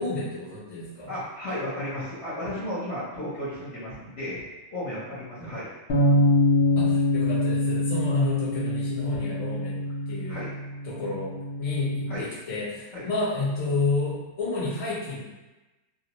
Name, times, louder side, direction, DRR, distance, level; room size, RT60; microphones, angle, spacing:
voice 1, 0.0-1.1 6.8-9.8 10.1-10.4 10.8-15.2, left 3 dB, 30° left, -9 dB, 0.7 m, -30 dB
voice 2, 1.1-4.4 4.7-5.7 10.3-10.5 12.1-12.3 12.9-13.0, left 1 dB, 55° left, -9 dB, 1.0 m, -33 dB
sound 1, 5.9-12.1, left 1 dB, 85° left, 0.5 m, -24 dB
2.7 x 2.1 x 2.8 m, 1.1 s
omnidirectional pair, 1.7 m